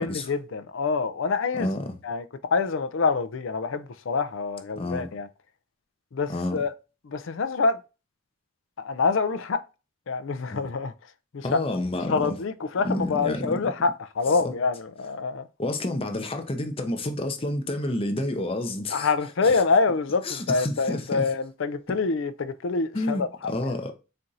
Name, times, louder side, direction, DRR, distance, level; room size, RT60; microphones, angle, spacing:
voice 1, 0.0-1.7 2.0-2.2 2.5-5.3 6.1-6.7 7.0-7.8 8.8-9.6 10.1-10.9 11.3-11.6 12.1-15.5 18.9-23.9, left 4 dB, 65° left, 0.4 m, -26 dB
voice 2, 1.5-1.9 4.8-5.1 6.3-6.6 10.5-10.7 11.4-12.3 12.8-13.6 14.4-14.5 15.6-19.1 19.4-19.6 20.2-21.2 22.9-23.9, left 1 dB, 25° left, 0.6 m, -29 dB
4.3 x 2.6 x 3.8 m
head